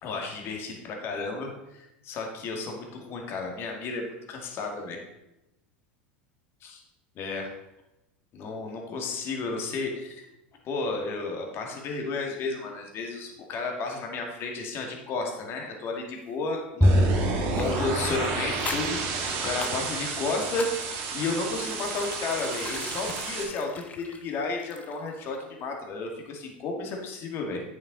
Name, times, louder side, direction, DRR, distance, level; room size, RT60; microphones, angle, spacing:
voice 1, 0.0-5.0 7.2-7.5 8.3-10.3 10.6-19.0 19.4-20.7 21.1-27.6, left 3 dB, 45° left, 1 dB, 2.3 m, -32 dB
Bowed string instrument, 16.8-19.3, left 1 dB, ahead, 0.6 m, -26 dB
sound 1, 16.8-23.4, right 4 dB, 50° right, 1.9 m, -31 dB
sound 2, 17.5-25.1 25.4-25.5, left 5 dB, 25° left, 1.0 m, -42 dB
8.7 x 7.0 x 4.2 m, 0.91 s
hypercardioid pair, 90°, 6 cm